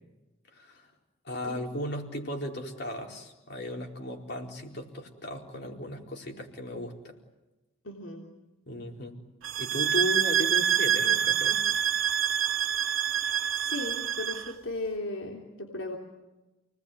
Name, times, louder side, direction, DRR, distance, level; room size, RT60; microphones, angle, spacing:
voice 1, 0.5-0.9 1.2-7.1 8.7-9.1 9.6-11.6, equal, 55° left, 1 dB, 4.5 m, -36 dB
voice 2, 7.8-8.2 13.5-16.0, left 2 dB, 75° left, 0 dB, 3.3 m, -36 dB
sound 1, 9.4-14.5, right 9 dB, 85° right, 1.4 m, -26 dB
29.5 x 20.0 x 9.7 m, 1.1 s
head